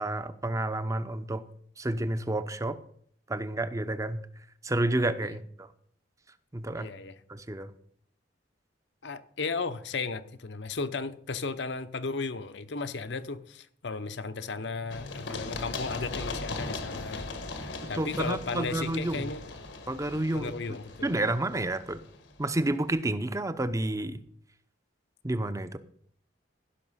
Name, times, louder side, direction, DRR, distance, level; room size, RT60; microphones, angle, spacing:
voice 1, 0.0-1.4 1.8-2.8 3.3-4.2 4.6-5.7 6.5-6.9 7.3-7.7 17.9-19.3 19.9-20.5 21.0-22.0 22.4-24.2 25.2-25.8, right 1 dB, 15° right, 0.6 m, -30 dB
voice 2, 6.8-7.2 9.0-19.5 20.3-21.2, left 4 dB, 65° left, 0.7 m, -35 dB
Run, 14.9-22.6, left 3 dB, 85° left, 1.6 m, -39 dB
15.5 x 6.0 x 5.6 m
head